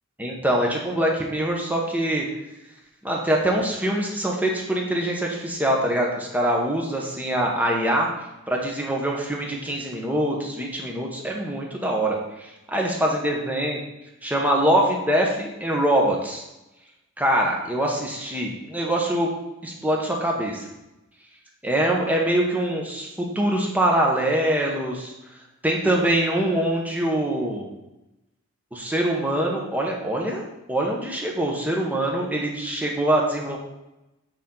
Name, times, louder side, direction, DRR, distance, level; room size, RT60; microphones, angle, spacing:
voice 1, 0.2-2.2 3.0-8.1 8.5-13.8 14.2-16.4 17.2-19.3 19.6-20.7 21.6-25.1 25.6-27.7 28.7-30.4 30.7-33.6, right 1 dB, 5° right, -1 dB, 1.0 m, -24 dB
8.2 x 4.3 x 3.8 m, 0.98 s
head